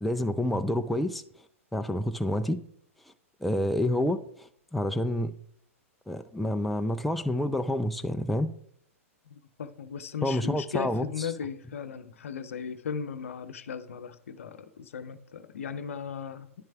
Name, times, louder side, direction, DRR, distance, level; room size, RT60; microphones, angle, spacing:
voice 1, 0.0-1.2 1.7-2.6 3.4-5.3 6.1-8.5 10.2-11.3, left 1 dB, ahead, 0.4 m, -28 dB
voice 2, 9.3-16.5, left 7 dB, 65° left, 0.7 m, -37 dB
10.5 x 10.0 x 2.3 m
figure-of-eight pair, 105°, 8 cm